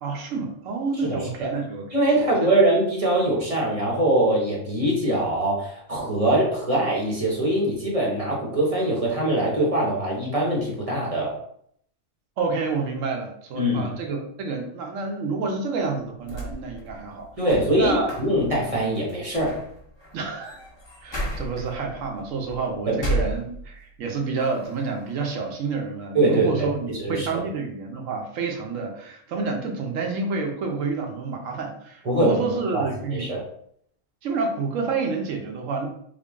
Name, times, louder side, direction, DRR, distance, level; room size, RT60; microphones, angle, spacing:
voice 1, 0.0-1.8 2.2-2.5 12.4-17.3 17.8-18.1 20.1-20.6 21.0-33.3 34.2-35.9, right 4 dB, 70° right, 2 dB, 1.1 m, -29 dB
voice 2, 1.0-1.5 1.9-11.3 13.5-13.9 17.4-19.6 22.9-23.3 26.1-27.4 32.0-32.4 32.7-33.4, right 1 dB, 30° right, -3 dB, 0.8 m, -23 dB
sound 1, 16.2-24.0 24.4-25.2, right 1 dB, 25° left, 0.7 m, -34 dB
3.7 x 2.2 x 3.4 m, 0.67 s
omnidirectional pair, 1.4 m